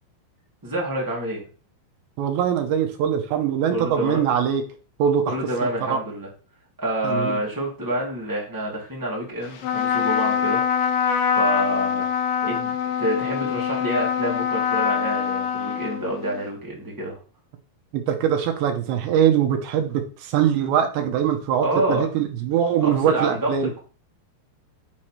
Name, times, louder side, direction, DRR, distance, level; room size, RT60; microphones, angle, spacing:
voice 1, 0.6-1.4 3.7-4.2 5.3-6.3 6.8-10.6 11.3-12.0 12.4-17.2 21.6-22.1 22.8-23.8, right 1 dB, 25° right, -4 dB, 0.4 m, -28 dB
voice 2, 2.2-4.6 5.0-5.3 5.9-6.0 7.0-7.4 17.9-23.7, right 9 dB, 80° right, 5 dB, 3.0 m, -22 dB
Trumpet, 9.6-16.4, left 7 dB, 90° left, 3.5 m, -24 dB
8.7 x 3.2 x 5.8 m, 0.38 s
omnidirectional pair, 5.3 m